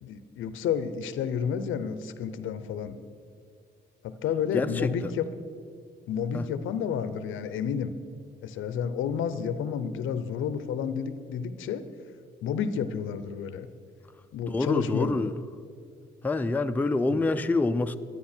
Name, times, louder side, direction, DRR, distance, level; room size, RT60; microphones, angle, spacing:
voice 1, 0.0-3.0 4.0-5.3 6.1-8.0 8.4-11.8 12.4-13.7 14.3-15.3 17.1-17.2, left 7 dB, 80° left, 12 dB, 0.7 m, -31 dB
voice 2, 4.5-5.1 6.3-6.5 14.5-15.3 16.2-18.0, left 3 dB, 10° left, 9 dB, 0.4 m, -26 dB
11.5 x 9.2 x 4.4 m, 2.3 s
cardioid pair, 90°, 20 cm